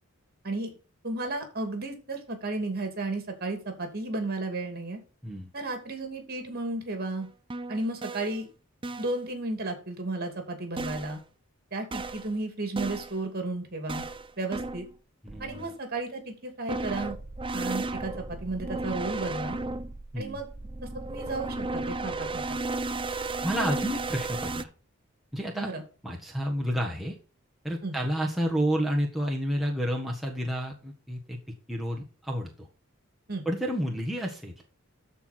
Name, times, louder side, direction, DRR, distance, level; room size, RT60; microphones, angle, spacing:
voice 1, 1.0-5.0 5.5-7.3 7.7-8.5 9.0-11.2 11.7-14.0 14.4-14.9 15.4-17.2 17.5-19.6 20.2-20.5 21.1-22.6 25.5-25.8 27.8-28.0 33.3-33.5, right 2 dB, 45° right, 5 dB, 2.8 m, -33 dB
sound 1, 7.2-7.3 7.5-8.4 8.8-9.2 10.8-11.2 11.9-12.4 12.8-13.2 13.9-14.9 15.3-15.7 16.7-24.6, right 2 dB, 25° right, 0.5 m, -34 dB
voice 2, 15.2-15.6 20.1-20.4 23.4-24.7 25.3-25.7 26.0-27.1 27.6-31.4 31.7-32.7 33.4-34.5, equal, ahead, -2 dB, 1.5 m, -30 dB
13.5 x 4.6 x 4.4 m, 0.35 s
head